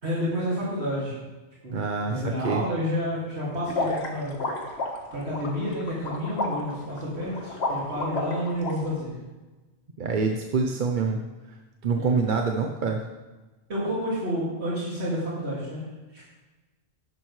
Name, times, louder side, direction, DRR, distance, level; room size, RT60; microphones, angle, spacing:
voice 1, 0.0-1.1 1.6-1.8 2.1-4.4 5.1-9.2 12.0-12.2 13.7-15.8 16.1-16.3, equal, 90° right, -8 dB, 2.7 m, -30 dB
voice 2, 1.7-2.6 10.0-11.2 11.8-13.0, right 4 dB, 50° right, 3 dB, 0.8 m, -26 dB
sound 1, 3.7-8.7, left 2 dB, 80° left, 1.6 m, -31 dB
11.5 x 10.5 x 3.2 m, 1.2 s
omnidirectional pair, 1.1 m